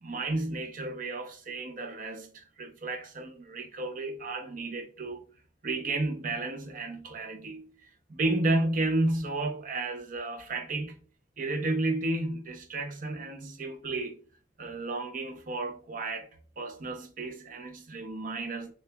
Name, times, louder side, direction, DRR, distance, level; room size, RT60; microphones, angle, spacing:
voice 1, 0.0-2.3 2.6-5.2 5.6-7.7 8.1-10.9 11.4-14.2 14.6-16.3 16.6-18.7, right 2 dB, 45° right, 0.6 m, -32 dB
6.6 x 2.3 x 2.3 m
head